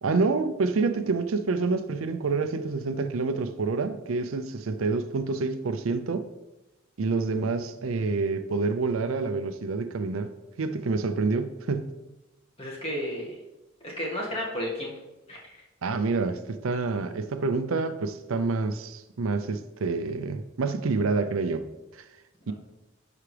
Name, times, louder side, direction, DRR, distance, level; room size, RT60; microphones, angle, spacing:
voice 1, 0.0-6.3 7.0-10.3 10.6-11.9 15.8-21.7 21.9-22.0 22.5-22.6, right 4 dB, 80° right, 0.5 m, -27 dB
voice 2, 12.6-13.4 13.8-14.9 15.3-15.4, equal, 25° left, 1.8 m, -32 dB
10.5 x 4.9 x 3.3 m
head